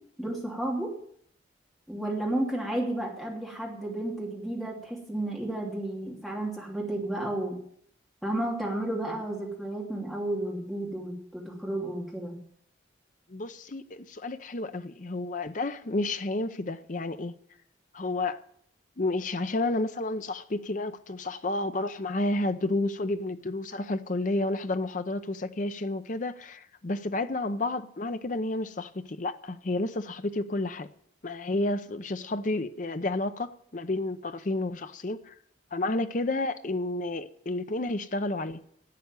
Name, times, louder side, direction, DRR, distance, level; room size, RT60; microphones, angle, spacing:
voice 1, 0.2-0.9 1.9-7.6 8.2-12.4, right 1 dB, ahead, 2.9 m, -32 dB
voice 2, 13.3-17.4 17.9-18.4 19.0-30.9 31.2-35.3 35.7-38.6, left 2 dB, 45° left, 0.7 m, -31 dB
11.5 x 7.9 x 9.6 m
head